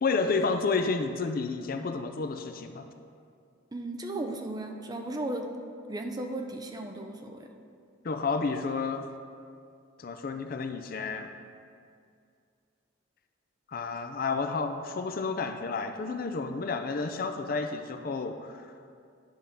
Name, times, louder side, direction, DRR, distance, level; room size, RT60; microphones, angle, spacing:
voice 1, 0.0-2.9 8.0-9.1 10.0-11.3 13.7-18.7, left 4 dB, 45° left, 7 dB, 0.4 m, -31 dB
voice 2, 3.7-5.5 5.9-7.5, right 2 dB, 20° right, 4 dB, 0.4 m, -35 dB
10.5 x 3.6 x 5.6 m, 2.3 s
head